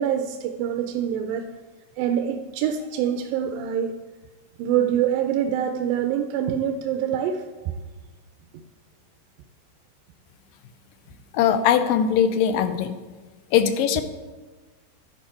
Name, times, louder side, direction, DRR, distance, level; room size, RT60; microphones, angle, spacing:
voice 1, 0.0-1.5 2.0-3.9 4.6-7.8, right 9 dB, 80° right, 5 dB, 2.3 m, -25 dB
voice 2, 11.3-13.0 13.5-14.0, left 8 dB, 80° left, 10 dB, 2.3 m, -20 dB
11.0 x 10.5 x 4.4 m, 1.3 s
omnidirectional pair, 4.1 m